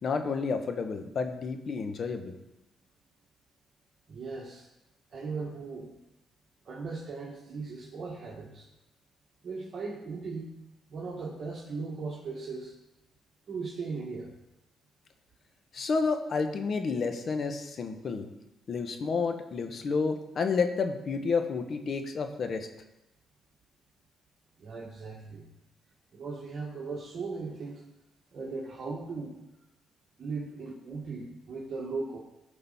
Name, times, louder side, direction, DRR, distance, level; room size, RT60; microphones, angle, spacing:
voice 1, 0.0-2.3 15.7-18.3 18.7-22.7, left 4 dB, 50° left, 7 dB, 1.2 m, -30 dB
voice 2, 4.1-4.7 5.1-5.9 6.7-8.7 9.4-10.5 10.9-12.7 13.5-14.3 24.6-25.5 26.1-27.8 28.3-29.4 30.2-32.2, right 4 dB, 50° right, -5 dB, 1.9 m, -38 dB
14.5 x 5.4 x 4.2 m, 0.93 s
cardioid pair, 90°, 0 cm